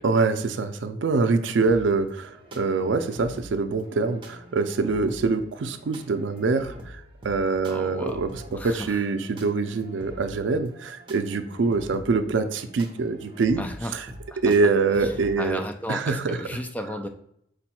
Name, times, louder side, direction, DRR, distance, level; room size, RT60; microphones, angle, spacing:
voice 1, 0.0-8.3 8.6-13.6 13.9-14.0 14.4-15.6 15.9-16.4, right 4 dB, 75° right, 10 dB, 0.4 m, -24 dB
sound 1, 1.7-15.4, equal, 25° right, 0.8 m, -45 dB
voice 2, 7.7-8.2 8.5-9.0 13.6-14.0 14.3-14.4 15.0-17.1, left 1 dB, 10° left, 6 dB, 0.3 m, -35 dB
5.0 x 2.3 x 4.2 m, 0.70 s
head